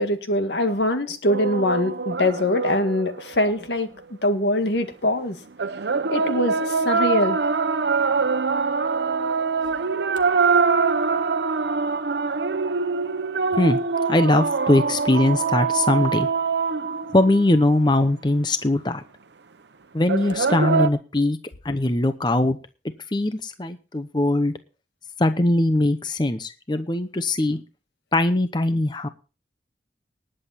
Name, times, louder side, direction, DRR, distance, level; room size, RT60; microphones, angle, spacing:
voice 1, 0.0-5.4 6.1-7.4, left 1 dB, 80° left, 7 dB, 1.9 m, -23 dB
sound 1, 1.3-3.8 5.6-17.9 20.1-20.9, right 4 dB, 85° right, 0.9 m, -24 dB
voice 2, 14.1-16.3 17.1-19.0 19.9-21.4 21.6-22.6 23.1-24.5 25.2-27.6 28.1-29.1, left 1 dB, 25° left, 10 dB, 0.7 m, -21 dB
19.5 x 7.8 x 4.2 m, 0.34 s
head